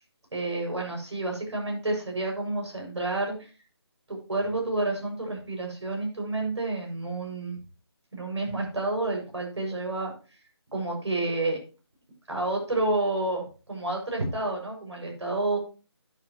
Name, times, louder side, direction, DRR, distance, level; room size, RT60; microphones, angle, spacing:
voice 1, 0.3-3.5 4.1-7.6 8.1-10.1 10.7-11.6 12.3-15.6, right 2 dB, 90° right, 0 dB, 6.9 m, -29 dB
10.5 x 10.0 x 3.1 m, 0.34 s
figure-of-eight pair, 180°, 14 cm